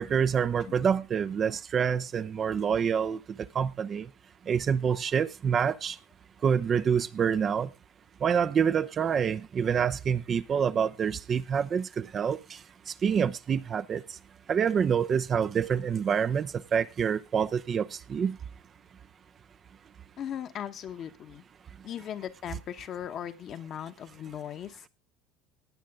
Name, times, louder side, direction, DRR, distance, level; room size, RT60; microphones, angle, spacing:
voice 1, 0.0-3.2 3.5-4.1 4.5-6.0 6.4-7.7 8.2-12.4 13.0-14.0 14.5-18.4, right 7 dB, 40° right, 0.7 m, -27 dB
voice 2, 20.2-21.4 21.8-24.9, left 9 dB, 50° left, 1.3 m, -38 dB
18.0 x 8.6 x 3.7 m
hypercardioid pair, 75°, 0 cm